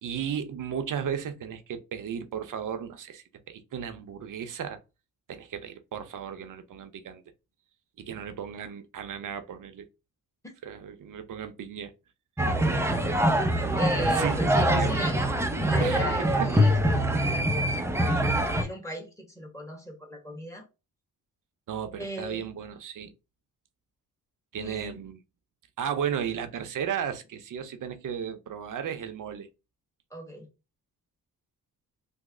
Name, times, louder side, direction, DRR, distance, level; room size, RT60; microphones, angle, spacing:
voice 1, 0.0-4.8 5.3-7.2 8.0-9.9 10.6-11.9 14.1-14.4 14.7-15.0 15.8-16.6 18.0-18.5 21.7-23.1 24.5-25.2 25.8-29.5, right 8 dB, 60° right, 0.7 m, -35 dB
sound 1, 12.4-18.6, right 1 dB, 5° right, 0.5 m, -24 dB
voice 2, 12.6-13.2 13.8-15.3 15.7-17.5 18.4-20.6 22.0-22.5 24.6-25.0 30.1-30.5, equal, 10° left, 1.3 m, -36 dB
3.1 x 2.1 x 3.6 m
cardioid pair, 75°, 36 cm